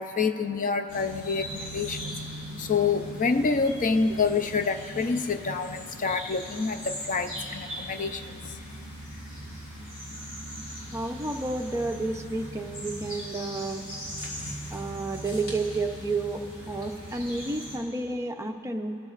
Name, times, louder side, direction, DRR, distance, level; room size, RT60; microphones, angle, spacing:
voice 1, 0.0-2.3 2.6-8.6, left 4 dB, 35° left, 8 dB, 0.5 m, -27 dB
sound 1, 0.9-17.8, equal, 55° left, 3.8 m, -39 dB
voice 2, 10.9-13.9 14.7-19.0, right 2 dB, 15° right, 3 dB, 0.6 m, -31 dB
26.0 x 14.0 x 2.5 m, 2.8 s
head